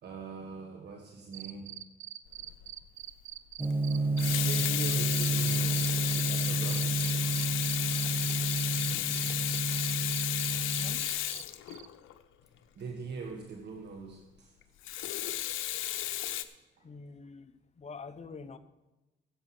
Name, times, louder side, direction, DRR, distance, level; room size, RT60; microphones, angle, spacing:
voice 1, 0.0-1.8 4.4-7.3 12.7-14.5 16.8-16.9, right 5 dB, 60° right, 1.5 m, -42 dB
sound 1, 1.3-11.4 11.7-11.9, right 14 dB, 85° right, 0.6 m, -44 dB
Water tap faucet / Sink (filling or washing), 2.4-2.6 4.0-12.2 14.8-16.4, left 13 dB, 85° left, 0.7 m, -33 dB
Gong, 3.6-11.0, right 2 dB, 10° right, 1.2 m, -31 dB
voice 2, 10.6-11.1 16.8-17.5 17.8-18.6, left 4 dB, 35° left, 0.9 m, -46 dB
10.5 x 7.8 x 7.5 m
cardioid pair, 90°, 20 cm